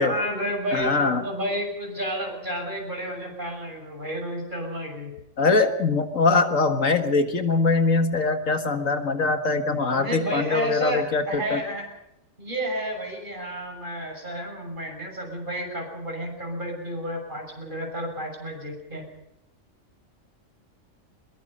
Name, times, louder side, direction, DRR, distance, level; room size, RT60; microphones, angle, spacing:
voice 1, 0.0-5.1 9.9-11.8 12.4-19.0, equal, 35° right, 2 dB, 6.8 m, -31 dB
voice 2, 0.7-1.2 5.4-11.6, left 3 dB, 75° left, 6 dB, 2.1 m, -22 dB
22.5 x 21.5 x 5.6 m, 0.84 s
omnidirectional pair, 1.4 m